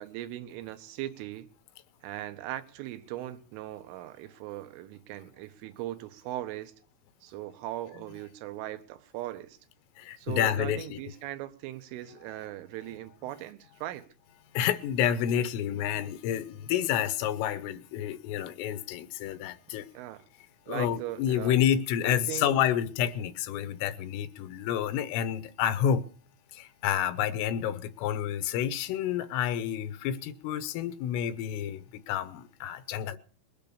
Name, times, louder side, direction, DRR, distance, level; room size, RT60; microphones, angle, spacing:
voice 1, 0.0-1.5 2.0-6.7 7.2-9.6 10.2-14.1 19.9-20.2 20.7-21.6 22.0-22.5, right 14 dB, 80° right, 3.3 m, -39 dB
voice 2, 10.0-11.0 14.6-19.9 20.7-26.0 26.5-33.2, left 10 dB, 80° left, 3.5 m, -29 dB
21.0 x 8.9 x 6.9 m
omnidirectional pair, 5.8 m